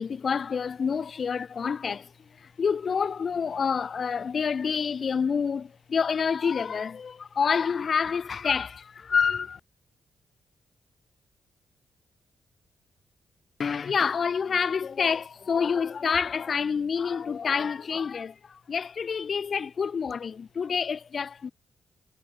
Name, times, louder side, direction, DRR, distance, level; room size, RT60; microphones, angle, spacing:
voice 1, 0.0-2.1 2.6-9.6 13.6-21.5, left 6 dB, 50° left, 0.9 m, -28 dB
cardioid pair, 85°, 0 cm